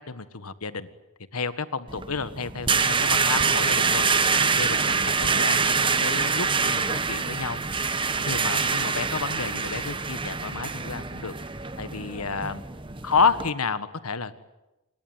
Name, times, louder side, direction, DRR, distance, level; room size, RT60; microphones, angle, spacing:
voice 1, 0.1-0.9 1.3-4.0 4.5-7.6 8.2-11.3 11.8-12.6 13.0-14.3, left 5 dB, 85° left, 13 dB, 1.5 m, -30 dB
sound 1, 1.9-13.5, right 5 dB, 20° right, 1.0 m, -25 dB
27.5 x 22.5 x 9.7 m, 1.0 s
head